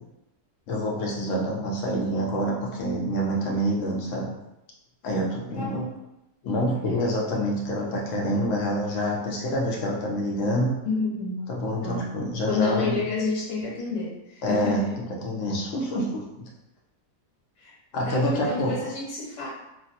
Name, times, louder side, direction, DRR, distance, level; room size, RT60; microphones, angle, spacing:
voice 1, 0.7-4.3 5.0-5.8 6.4-10.8 11.5-13.0 14.4-14.9 15.2-16.5 17.9-18.7, equal, 65° left, -2 dB, 0.8 m, -27 dB
voice 2, 5.5-5.9 10.8-11.5 11.8-12.2 12.5-15.0 17.6-17.7 18.0-19.5, left 3 dB, 80° left, -5 dB, 1.6 m, -29 dB
3.0 x 2.0 x 2.7 m, 0.90 s
omnidirectional pair, 1.8 m